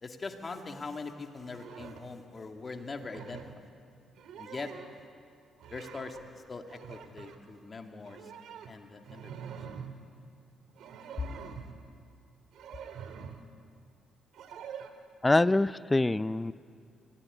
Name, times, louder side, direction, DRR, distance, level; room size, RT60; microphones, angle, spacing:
voice 1, 0.0-3.4 4.4-4.7 5.7-6.2 6.5-8.2 8.7-9.3, left 3 dB, 30° left, 5 dB, 2.3 m, -41 dB
sound 1, 1.5-2.1 2.9-3.6 4.1-5.0 5.6-6.2 6.6-7.4 8.1-10.0 10.7-11.8 12.5-13.5 14.3-14.9, right 7 dB, 80° right, 2.0 m, -45 dB
voice 2, 15.2-16.5, left 2 dB, 15° left, 16 dB, 0.5 m, -25 dB
24.0 x 17.5 x 10.0 m, 2.3 s
cardioid pair, 90°, 0 cm